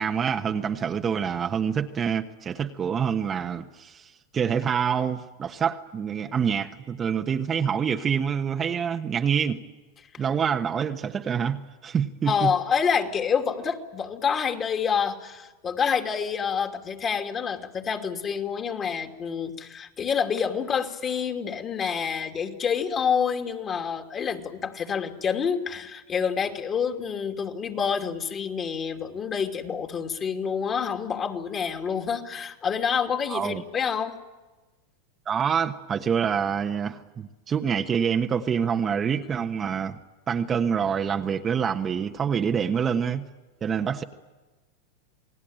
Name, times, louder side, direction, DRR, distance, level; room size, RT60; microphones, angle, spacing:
voice 1, 0.0-9.6 10.2-12.5 33.3-33.6 35.3-40.0 40.3-43.2 43.6-44.0, right 7 dB, 25° right, 5 dB, 1.3 m, -26 dB
voice 2, 12.3-34.2, left 6 dB, 30° left, 4 dB, 2.9 m, -27 dB
29.0 x 19.5 x 9.0 m, 1.2 s
hypercardioid pair, 110°, 0 cm